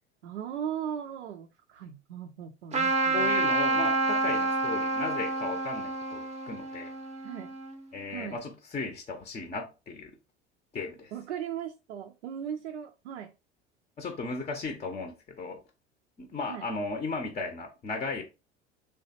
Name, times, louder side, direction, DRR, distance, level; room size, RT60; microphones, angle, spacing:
voice 1, 0.2-3.3 7.2-7.6 8.1-8.4 11.1-13.3 16.5-16.7, right 9 dB, 80° right, 0.5 m, -38 dB
Trumpet, 2.7-7.8, right 3 dB, 20° right, 0.6 m, -28 dB
voice 2, 3.1-6.9 7.9-10.1 10.7-11.1 14.0-15.6 16.2-18.2, left 3 dB, 20° left, 0.6 m, -36 dB
3.1 x 2.3 x 2.7 m
figure-of-eight pair, 75°, 35 cm